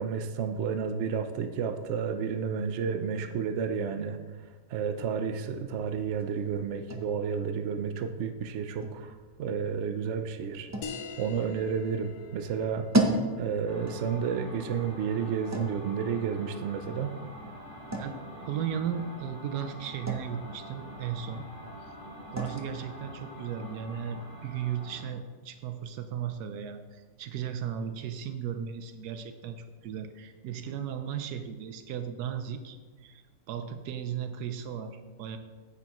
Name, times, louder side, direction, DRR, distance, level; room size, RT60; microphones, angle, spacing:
voice 1, 0.0-4.2 4.7-9.1 9.4-10.7 11.2-12.9 13.4-17.2, right 6 dB, 65° right, 8 dB, 0.7 m, -31 dB
sound 1, 5.4-25.0, right 1 dB, 20° right, 0.4 m, -38 dB
sound 2, 10.8-15.9, left 5 dB, 75° left, 1.2 m, -46 dB
sound 3, 13.7-25.1, equal, 25° left, 3.2 m, -45 dB
voice 2, 18.4-21.5 21.8-21.9 22.3-35.4, right 8 dB, 85° right, 9 dB, 1.1 m, -36 dB
9.6 x 8.6 x 3.0 m, 1.4 s
omnidirectional pair, 1.7 m